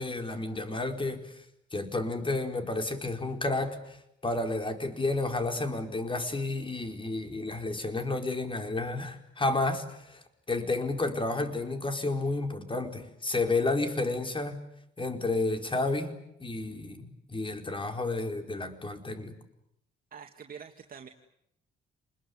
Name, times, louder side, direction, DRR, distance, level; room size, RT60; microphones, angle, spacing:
voice 1, 0.0-1.4 1.7-14.6 15.0-19.4, left 2 dB, 25° left, 6 dB, 4.7 m, -31 dB
voice 2, 20.1-21.1, right 7 dB, 45° right, 3 dB, 2.3 m, -45 dB
28.5 x 21.5 x 9.7 m, 0.78 s
cardioid pair, 90°, 20 cm